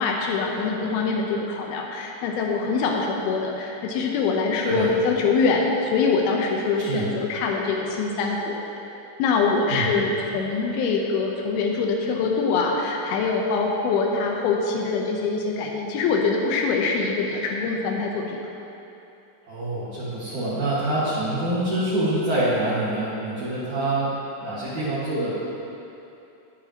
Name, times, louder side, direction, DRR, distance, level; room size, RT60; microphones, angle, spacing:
voice 1, 0.0-8.6 9.2-18.4, left 4 dB, 90° left, 0 dB, 2.8 m, -24 dB
voice 2, 19.5-24.1 24.4-25.3, right 1 dB, 60° right, -11 dB, 3.1 m, -25 dB
20.0 x 8.3 x 3.0 m, 2.9 s
omnidirectional pair, 4.3 m